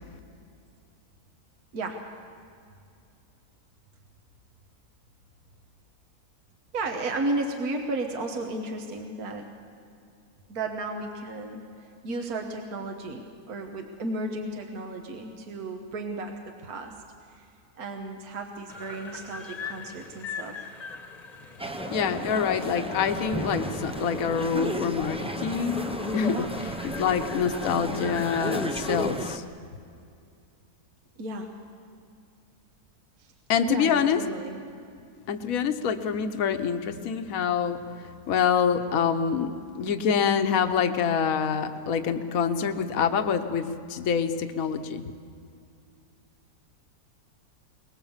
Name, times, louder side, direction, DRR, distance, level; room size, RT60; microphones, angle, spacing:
voice 1, 6.7-9.5 10.5-16.9 17.3-17.5 17.8-20.7 31.2-31.5 33.2-33.3 33.7-34.6, right 2 dB, 65° right, 3 dB, 1.8 m, -34 dB
sound 1, 18.7-28.9, left 5 dB, 25° left, 1.2 m, -41 dB
sound 2, 21.6-29.4, equal, 10° right, 0.3 m, -33 dB
voice 2, 21.9-29.4 33.5-34.2 35.3-39.5 39.7-45.0, left 7 dB, 60° left, 8 dB, 1.3 m, -26 dB
23.0 x 20.0 x 7.3 m, 2.4 s
omnidirectional pair, 1.7 m